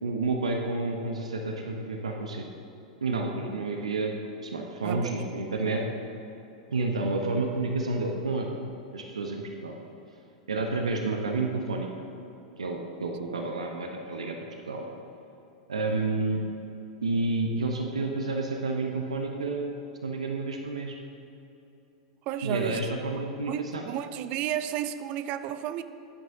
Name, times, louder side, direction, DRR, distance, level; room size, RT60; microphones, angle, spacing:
voice 1, 0.0-2.4 3.0-4.2 4.4-5.8 6.7-8.5 8.9-9.8 10.5-11.9 12.6-14.4 14.7-14.9 15.7-16.4 17.0-19.8 20.0-21.0 22.4-23.8, right 3 dB, 70° right, 2 dB, 0.9 m, -30 dB
voice 2, 4.8-5.2 22.3-22.9 23.5-25.8, right 11 dB, 40° right, 12 dB, 0.5 m, -32 dB
16.0 x 11.0 x 2.8 m, 3.0 s
figure-of-eight pair, 90°, 3 cm